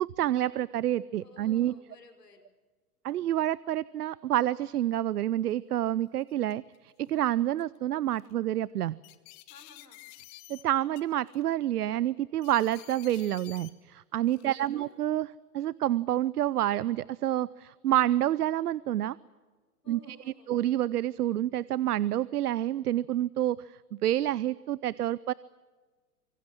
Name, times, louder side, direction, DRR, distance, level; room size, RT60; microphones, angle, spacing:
voice 1, 0.0-1.7 3.0-9.0 10.5-15.3 15.5-19.2 19.9-20.0 20.5-25.3, right 12 dB, 75° right, 21 dB, 0.7 m, -28 dB
voice 2, 1.2-2.4 9.5-10.0 14.5-15.0 19.8-20.6, left 3 dB, 85° left, 8 dB, 5.3 m, -55 dB
sound 1, 5.5-5.6 6.2-6.8 7.6-7.8 8.1-8.3 9.0-10.6 10.9-11.5 12.4-13.7 14.3-14.7, left 19 dB, 40° left, 1.9 m, -51 dB
25.5 x 24.0 x 7.6 m, 1.3 s
hypercardioid pair, 110°, 46 cm